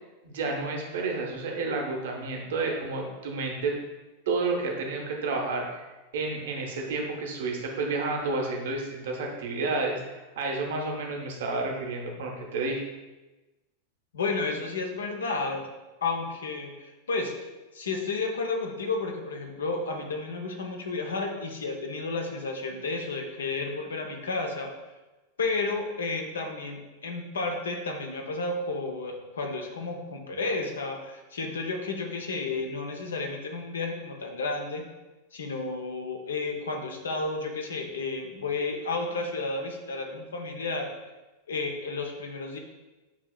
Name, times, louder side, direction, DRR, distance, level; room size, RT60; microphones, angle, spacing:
voice 1, 0.2-3.7 4.3-5.8 6.1-12.8, right 3 dB, 60° right, 1 dB, 0.9 m, -30 dB
voice 2, 14.1-15.6 16.0-24.7 25.4-34.8 35.3-40.9 41.5-42.6, left 3 dB, 65° left, 3 dB, 0.6 m, -32 dB
7.1 x 2.8 x 2.3 m, 1.1 s
figure-of-eight pair, 90°, 0 cm